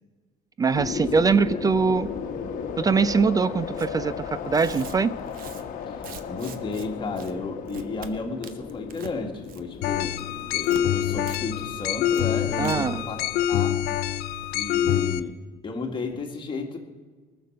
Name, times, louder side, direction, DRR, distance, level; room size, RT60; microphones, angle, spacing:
voice 1, 0.6-2.1 2.8-5.2 12.6-13.0, right 5 dB, 25° right, 16 dB, 0.3 m, -22 dB
sound 1, 0.7-13.5, left 6 dB, 60° left, 1.2 m, -36 dB
Tearing, 3.7-3.9 4.4-6.9 7.2-7.3 7.7-8.1 8.4-9.2 9.4-9.8 10.1-10.8 11.3-11.4 11.7-11.8 12.1-12.2 12.6-12.7, right 9 dB, 65° right, 0.9 m, -43 dB
voice 2, 5.9-10.2 10.5-13.2 13.5-13.9 14.5-15.4 15.6-16.8, left 3 dB, 30° left, 2 dB, 1.9 m, -33 dB
sound 2, 9.8-15.2, left 11 dB, 80° left, 0.5 m, -25 dB
19.0 x 6.9 x 6.4 m, 1.5 s
cardioid pair, 115°, 16 cm